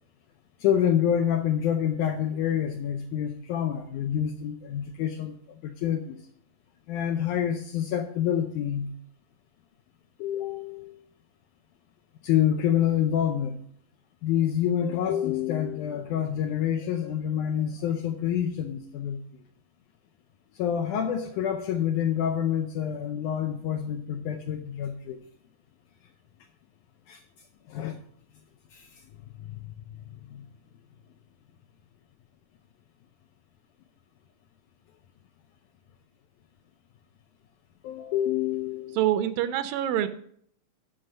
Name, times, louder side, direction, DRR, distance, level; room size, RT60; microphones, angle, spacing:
voice 1, 0.6-6.2 6.9-8.9 10.2-11.0 12.2-13.6 14.2-19.2 20.6-25.2 27.1-27.2 27.7-28.0 28.7-28.9 29.4-30.0 30.3-30.5 37.8-39.1, left 9 dB, 80° left, 6 dB, 1.8 m, -27 dB
voice 2, 39.0-40.1, right 12 dB, 80° right, 11 dB, 2.2 m, -25 dB
11.5 x 5.2 x 5.5 m, 0.63 s
omnidirectional pair, 4.2 m